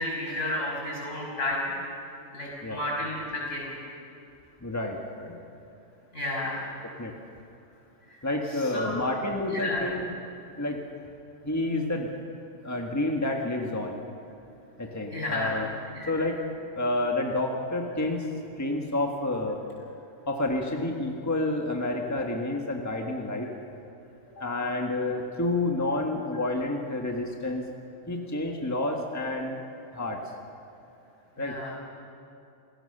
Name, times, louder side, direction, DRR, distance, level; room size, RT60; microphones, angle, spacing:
voice 1, 0.0-1.7 2.3-3.8 6.1-6.7 8.1-8.2 8.5-8.9 9.5-9.8 15.1-15.6 15.9-16.1 31.4-31.7, left 1 dB, 70° left, -4 dB, 6.8 m, -32 dB
voice 2, 4.6-5.4 7.0-7.1 8.2-10.1 10.6-10.8 11.4-12.1 12.6-14.0 14.8-15.7 16.1-16.4 16.8-18.3 18.6-19.6 20.3-23.5 24.4-27.6 28.1-29.6 29.9-30.2 31.4-31.5, left 2 dB, 15° left, 1 dB, 1.6 m, -29 dB
28.0 x 17.0 x 6.8 m, 2.7 s
omnidirectional pair, 1.3 m